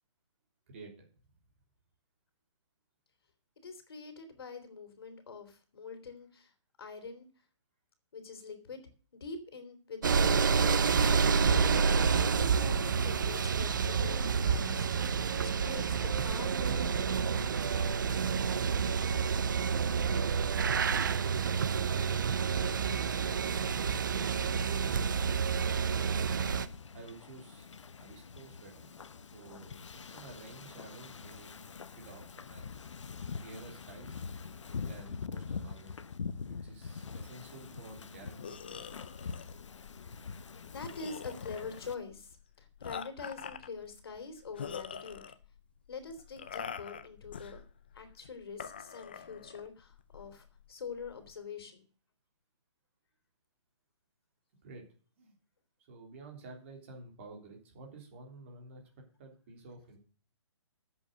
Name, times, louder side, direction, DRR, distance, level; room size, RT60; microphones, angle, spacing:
voice 1, 3.6-6.5 6.8-7.3 8.1-8.8 9.1-12.0 12.3-15.2 15.6-17.6 40.7-45.2 45.9-47.6 47.9-51.8, left 4 dB, 50° left, 9 dB, 3.5 m, -45 dB
sound 1, 10.0-26.7, right 6 dB, 40° right, 0.7 m, -29 dB
voice 2, 21.3-26.7 26.9-27.7 28.0-28.9 29.3-32.9 33.4-34.2 34.8-36.0 36.6-38.9 54.6-54.9 55.2-55.3 55.9-58.8 59.2-60.0, right 3 dB, 25° right, 1 dB, 3.5 m, -51 dB
Wind / Ocean, 26.1-41.9, left 5 dB, 70° left, 1.0 m, -44 dB
sound 2, 38.4-51.3, left 7 dB, 20° left, 0.5 m, -46 dB
10.5 x 7.9 x 6.7 m, 0.41 s
hypercardioid pair, 175°, 16 cm